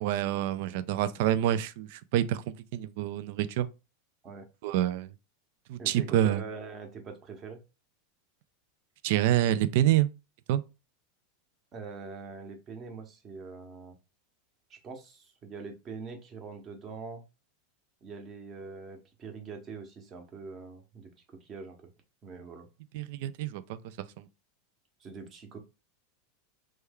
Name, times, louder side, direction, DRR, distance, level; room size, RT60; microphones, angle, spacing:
voice 1, 0.0-2.4 2.7-3.7 4.6-5.1 5.7-6.4 9.0-10.1 10.5-10.6 22.9-23.8 24.2-24.3, right 12 dB, 65° right, 0.3 m, -27 dB
voice 2, 5.8-7.6 11.7-13.9 14.7-17.2 18.0-21.8 22.2-22.7 25.0-25.6, right 4 dB, 35° right, 1.0 m, -43 dB
3.1 x 2.3 x 3.5 m
hypercardioid pair, 100°, 0 cm